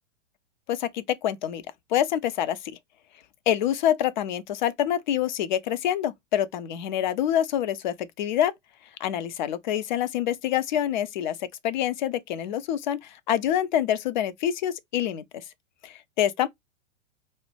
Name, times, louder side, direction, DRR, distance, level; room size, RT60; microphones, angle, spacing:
voice 1, 0.7-1.6 1.9-2.6 3.5-8.5 9.0-15.4 15.8-16.5, left 10 dB, 40° left, 0.4 m, -26 dB
4.0 x 2.1 x 3.1 m
figure-of-eight pair, 105°, 36 cm